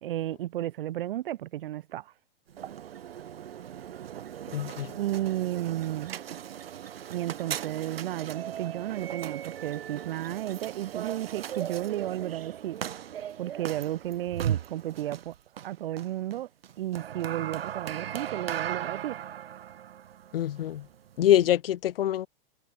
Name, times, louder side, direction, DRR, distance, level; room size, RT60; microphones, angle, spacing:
voice 1, 0.0-2.1 4.9-6.2 7.1-12.8 13.4-15.3 15.6-16.5 16.8-19.2, right 13 dB, 65° right, 3.2 m, -33 dB
sound 1, 2.5-21.6, right 10 dB, 80° right, 1.6 m, -38 dB
voice 2, 4.5-4.9 20.3-20.9 21.2-22.3, left 12 dB, 70° left, 1.1 m, -24 dB
hypercardioid pair, 130°, 30 cm